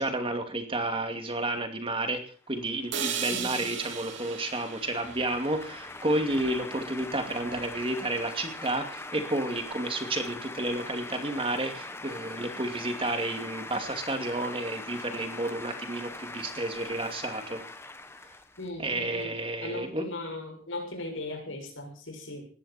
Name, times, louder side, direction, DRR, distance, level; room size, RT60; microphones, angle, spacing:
voice 1, 0.0-2.2 2.5-17.6 18.8-20.1, right 1 dB, 25° right, 6 dB, 2.5 m, -31 dB
sound 1, 2.5-19.2, left 2 dB, 10° left, 1.1 m, -42 dB
sound 2, 2.9-6.9, right 7 dB, 60° right, 2.7 m, -37 dB
voice 2, 18.6-19.4 19.6-22.4, left 2 dB, 70° left, 2 dB, 6.7 m, -38 dB
20.0 x 14.5 x 4.4 m, 0.41 s
head